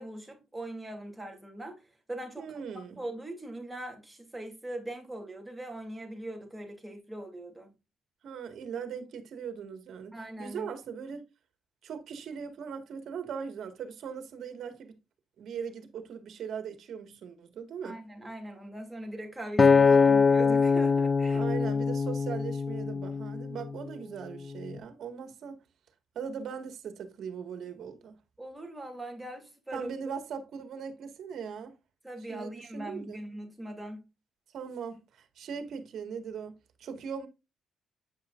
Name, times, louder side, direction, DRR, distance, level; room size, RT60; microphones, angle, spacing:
voice 1, 0.0-2.5 3.0-7.7 10.1-10.7 17.8-21.4 28.4-29.9 32.0-34.0, right 1 dB, 10° right, 2.8 m, -41 dB
voice 2, 2.4-3.0 8.2-10.1 10.4-11.2 11.8-15.0 15.4-18.0 21.3-25.6 26.2-28.2 29.7-31.7 32.3-33.2 34.5-37.3, right 6 dB, 70° right, 1.7 m, -39 dB
Acoustic guitar, 19.6-23.9 24.5-24.8, left 5 dB, 30° left, 0.5 m, -23 dB
8.9 x 5.7 x 2.5 m
cardioid pair, 90°, 0 cm